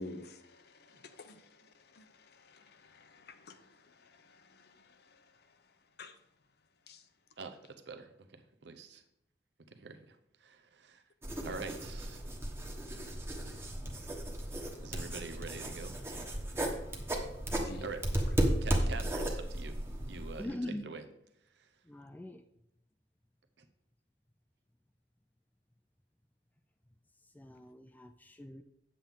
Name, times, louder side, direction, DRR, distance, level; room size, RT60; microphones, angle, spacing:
voice 1, 0.0-6.2 6.9-7.1 17.5-17.9, left 2 dB, 65° left, 0.7 m, -51 dB
voice 2, 7.9-9.0 9.7-10.2 10.4-11.0 11.4-12.2 14.8-15.9 17.8-18.1 18.4-21.0 21.6-21.7, right 4 dB, 75° right, 0.8 m, -45 dB
sound 1, 11.2-20.4, right 1 dB, 15° right, 1.2 m, -35 dB
voice 3, 20.4-20.9 21.9-22.4 27.4-28.6, left 1 dB, 10° left, 0.4 m, -42 dB
8.6 x 7.6 x 3.6 m
head